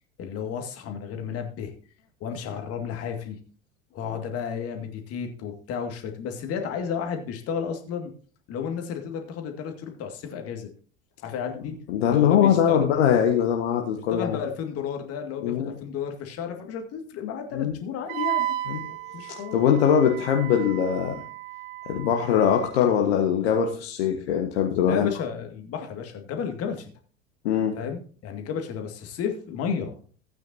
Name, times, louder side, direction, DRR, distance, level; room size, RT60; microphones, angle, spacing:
voice 1, 0.2-1.7 2.2-3.4 3.9-8.1 8.5-10.7 11.2-11.7 12.1-12.9 14.1-18.6 19.1-19.6 24.8-26.9 27.8-29.9, left 7 dB, 40° left, 5 dB, 2.1 m, -32 dB
voice 2, 11.9-14.4 15.4-15.7 17.5-17.8 18.7-18.8 19.3-21.1 21.9-25.1 27.4-27.8, left 8 dB, 60° left, 2 dB, 1.5 m, -22 dB
Wind instrument woodwind instrument, 18.1-22.7, right 14 dB, 50° right, 0.7 m, -34 dB
15.5 x 9.1 x 2.8 m, 0.42 s
figure-of-eight pair, 75°, 35 cm